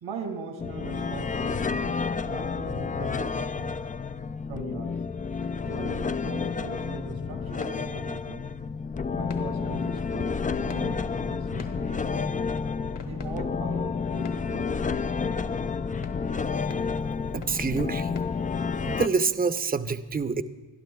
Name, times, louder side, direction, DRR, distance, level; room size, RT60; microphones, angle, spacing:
voice 1, 0.0-3.7 4.5-5.0 5.6-8.4 9.1-12.3 13.0-15.0, right 4 dB, 75° right, 5 dB, 2.0 m, -40 dB
sound 1, 0.6-19.1, left 5 dB, 20° left, 0.3 m, -30 dB
sound 2, 5.4-8.8 9.0-15.5 16.0-18.7, left 4 dB, 60° left, 1.8 m, -48 dB
voice 2, 17.3-18.1 18.8-20.4, right 5 dB, 20° right, 11 dB, 0.7 m, -27 dB
23.0 x 11.5 x 2.3 m, 1.2 s
supercardioid pair, 40°, 48 cm